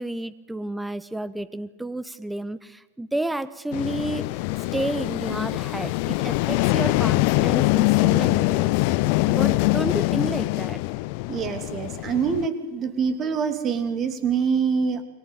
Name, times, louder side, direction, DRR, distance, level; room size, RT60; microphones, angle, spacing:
voice 1, 0.0-4.4 4.7-8.8 9.3-10.8, right 1 dB, 5° right, 17 dB, 1.3 m, -31 dB
sound 1, 3.7-12.5, left 21 dB, 45° left, 0.8 m, -23 dB
voice 2, 11.3-15.0, right 6 dB, 30° right, 10 dB, 3.0 m, -25 dB
29.5 x 22.5 x 8.5 m, 1.2 s
figure-of-eight pair, 90°, 0 cm